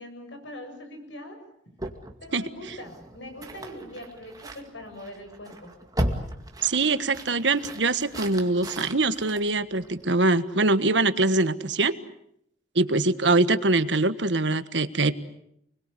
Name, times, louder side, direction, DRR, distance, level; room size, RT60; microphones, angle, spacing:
voice 1, 0.0-1.4 2.2-5.7, left 1 dB, 90° left, 5 dB, 7.7 m, -42 dB
sound 1, 1.8-10.2, right 1 dB, 20° right, 2.3 m, -36 dB
voice 2, 6.6-11.9 12.7-15.1, right 3 dB, 85° right, 12 dB, 1.5 m, -23 dB
29.5 x 21.5 x 8.4 m, 0.73 s
head